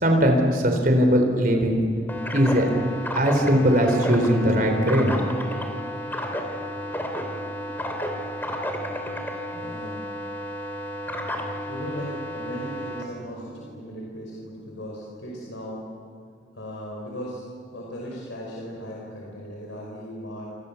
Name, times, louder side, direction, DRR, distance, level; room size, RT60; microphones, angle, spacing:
voice 1, 0.0-1.8 2.3-2.7 3.1-5.1, equal, 45° right, 4 dB, 4.1 m, -20 dB
sound 1, 2.1-13.0, equal, 10° left, 2.9 m, -32 dB
voice 2, 9.5-10.0 11.7-15.8 16.5-17.4 17.7-20.5, equal, 85° left, -3 dB, 5.4 m, -37 dB
28.0 x 26.5 x 7.2 m, 2.4 s
head